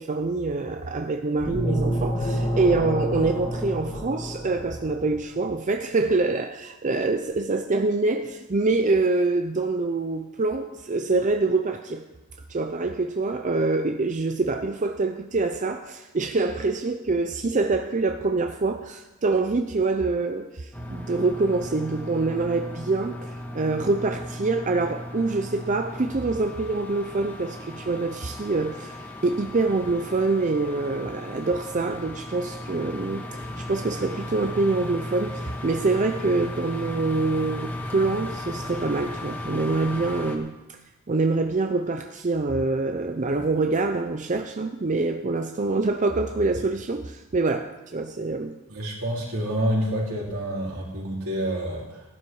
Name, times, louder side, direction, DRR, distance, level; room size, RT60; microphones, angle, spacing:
voice 1, 0.0-12.0 12.5-40.8 41.1-48.6, right 3 dB, 35° right, 0.6 m, -25 dB
sound 1, 1.4-5.1, equal, 30° left, 2.4 m, -28 dB
sound 2, 20.7-40.4, left 1 dB, 10° left, 2.0 m, -36 dB
voice 2, 48.7-52.0, equal, 75° right, 4.5 m, -28 dB
16.0 x 11.5 x 4.8 m
head